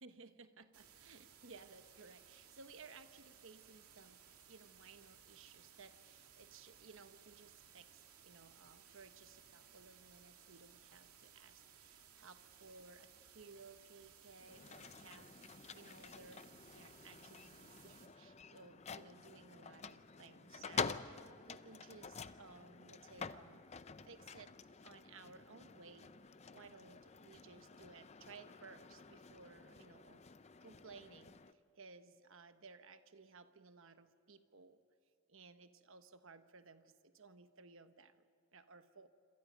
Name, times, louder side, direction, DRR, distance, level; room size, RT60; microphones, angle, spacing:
voice 1, 0.0-23.7 24.0-24.6 24.8-26.2 26.5-30.2 30.6-34.8 35.3-38.2 38.5-39.1, right 4 dB, 60° right, 9 dB, 1.1 m, -59 dB
sound 1, 0.7-18.1, right 8 dB, 85° right, 2.5 m, -62 dB
sound 2, 14.4-31.5, left 5 dB, 30° left, 0.5 m, -49 dB
27.0 x 27.0 x 5.3 m, 2.4 s
head